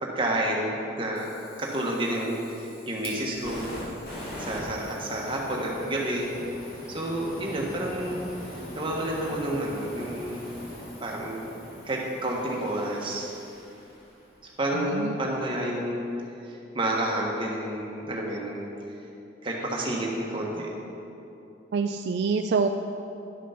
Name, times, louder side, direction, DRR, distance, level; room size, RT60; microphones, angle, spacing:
voice 1, 0.0-1.3 1.6-3.7 4.4-6.3 6.9-8.2 8.7-10.5 11.0-11.5 11.8-13.3 14.6-16.0 16.5-18.6 19.4-20.7, right 1 dB, 25° right, -2 dB, 1.4 m, -30 dB
Fire, 1.1-14.3, left 1 dB, 50° left, 2.5 m, -42 dB
voice 2, 14.7-15.2 21.7-22.7, right 5 dB, 60° right, 6 dB, 0.3 m, -26 dB
11.0 x 6.2 x 5.8 m, 2.8 s
head